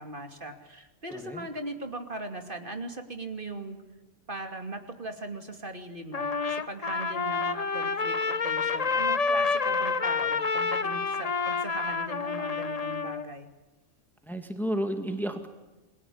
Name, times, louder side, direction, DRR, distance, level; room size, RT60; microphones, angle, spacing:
voice 1, 0.0-3.8 4.3-13.5, right 2 dB, 45° right, 6 dB, 2.8 m, -39 dB
voice 2, 1.1-1.5 14.2-15.5, equal, ahead, 6 dB, 2.1 m, -32 dB
Trumpet, 6.1-13.3, left 4 dB, 35° left, 1.0 m, -28 dB
29.0 x 22.0 x 8.7 m, 1.1 s
omnidirectional pair, 1.3 m